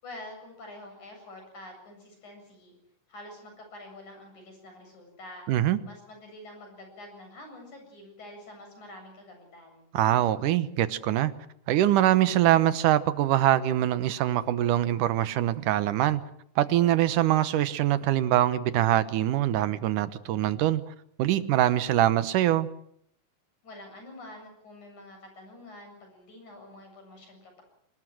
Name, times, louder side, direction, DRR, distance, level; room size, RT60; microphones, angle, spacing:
voice 1, 0.0-2.7 3.1-5.5 5.8-9.9 23.6-27.6, left 1 dB, 65° left, 4 dB, 9.2 m, -47 dB
voice 2, 5.5-5.8 9.9-11.3 11.7-16.2 16.6-20.8 21.2-22.7, right 13 dB, 80° right, 14 dB, 2.6 m, -23 dB
25.0 x 20.0 x 7.6 m, 0.72 s
omnidirectional pair, 3.7 m